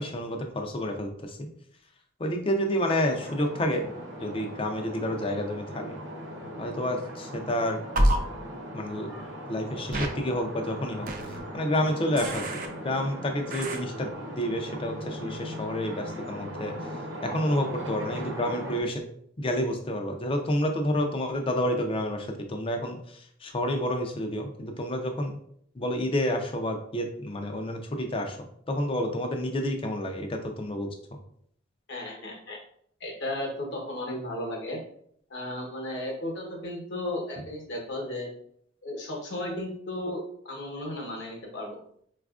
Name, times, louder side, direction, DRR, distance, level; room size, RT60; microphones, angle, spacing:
voice 1, 0.0-1.5 2.2-3.8 4.2-5.9 6.6-7.8 8.7-9.1 9.5-11.1 11.5-12.4 12.8-14.1 14.4-16.7 17.2-19.0 19.4-23.0 23.4-25.4 25.8-28.4 28.7-30.9, left 1 dB, 25° left, 4 dB, 0.4 m, -29 dB
sound 1, 3.0-18.8, equal, 60° right, 0.8 m, -39 dB
sound 2, 8.0-8.2 9.9-10.1 11.1-11.4 12.2-12.7 13.5-13.8, right 1 dB, 40° right, 0.4 m, -26 dB
voice 2, 31.9-32.6 33.0-34.8 35.3-38.3 38.8-41.8, left 1 dB, 55° left, -1 dB, 0.9 m, -34 dB
4.1 x 2.4 x 2.3 m, 0.66 s
head